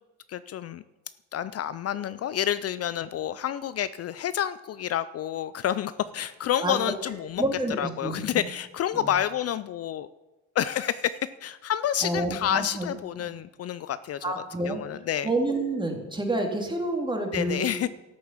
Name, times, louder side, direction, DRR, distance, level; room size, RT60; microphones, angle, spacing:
voice 1, 0.3-0.8 1.3-7.4 7.8-10.1 10.6-14.3 14.6-15.3 17.3-17.9, left 10 dB, 55° left, 15 dB, 0.4 m, -29 dB
voice 2, 7.4-8.2 8.9-9.1 12.0-12.9 14.2-14.8 15.2-17.7, right 2 dB, 15° right, 3 dB, 2.5 m, -28 dB
13.0 x 7.2 x 7.2 m, 1.1 s
cardioid pair, 90°, 30 cm